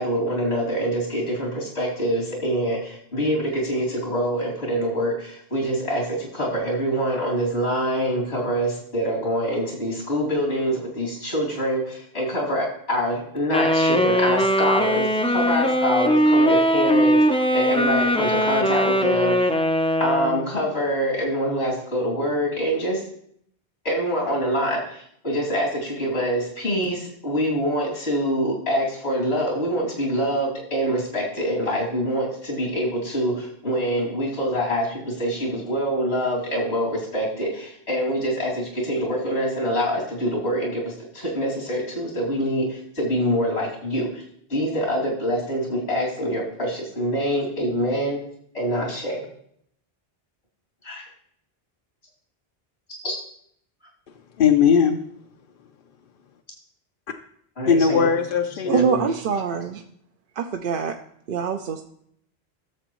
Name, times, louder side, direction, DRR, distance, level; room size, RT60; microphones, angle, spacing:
voice 1, 0.0-19.5 20.0-23.0 23.8-44.2 44.5-48.2 48.5-49.2 50.8-51.0 53.0-53.1 57.6-58.1 58.6-59.1, equal, 85° left, -3 dB, 3.0 m, -25 dB
Wind instrument woodwind instrument, 13.5-20.5, equal, 10° left, 0.4 m, -20 dB
voice 2, 54.1-55.0 57.7-58.8, left 6 dB, 60° left, 4 dB, 0.8 m, -19 dB
voice 3, 58.7-59.8 60.4-61.0 61.3-61.8, right 6 dB, 60° right, 4 dB, 0.7 m, -24 dB
13.5 x 7.0 x 3.0 m, 0.68 s
omnidirectional pair, 1.1 m